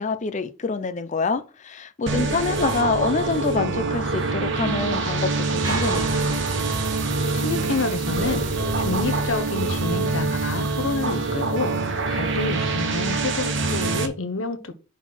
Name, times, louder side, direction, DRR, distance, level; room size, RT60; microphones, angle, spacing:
voice 1, 0.0-6.1, left 4 dB, 35° left, 0.5 m, -26 dB
sound 1, 2.1-14.1, right 3 dB, 65° right, 1.1 m, -25 dB
sound 2, 5.6-9.9, right 2 dB, 20° right, 2.1 m, -36 dB
voice 2, 7.3-14.8, left 3 dB, 80° left, 1.0 m, -29 dB
5.8 x 4.1 x 5.9 m
head